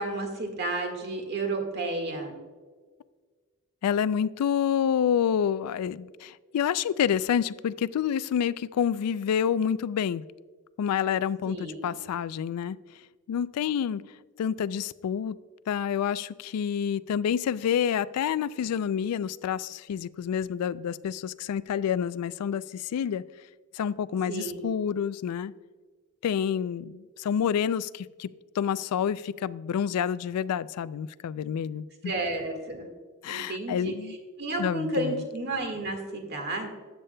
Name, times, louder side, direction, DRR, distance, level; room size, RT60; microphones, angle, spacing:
voice 1, 0.0-2.3 11.4-11.9 24.3-24.6 32.0-32.9 33.3-33.9 34.4-36.7, right 2 dB, 50° right, 4 dB, 1.7 m, -31 dB
voice 2, 3.8-10.2 10.8-12.8 13.3-14.0 14.4-15.4 15.7-23.2 23.7-25.5 26.2-32.1 33.2-34.2 34.6-35.2, left 8 dB, 85° left, 19 dB, 0.3 m, -28 dB
13.0 x 8.1 x 2.2 m, 1.5 s
head